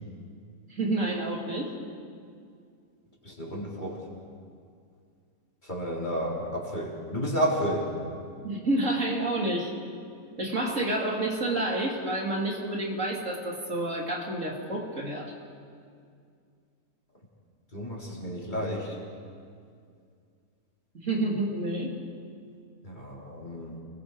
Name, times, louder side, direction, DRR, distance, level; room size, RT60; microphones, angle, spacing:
voice 1, 0.7-1.7 8.4-9.7 10.4-15.3 20.9-21.9, right 2 dB, 60° right, -1 dB, 3.3 m, -29 dB
voice 2, 3.2-4.0 5.6-7.9 17.7-19.0 22.8-23.8, equal, 30° left, -3 dB, 4.0 m, -31 dB
30.0 x 21.0 x 4.9 m, 2.3 s
omnidirectional pair, 1.5 m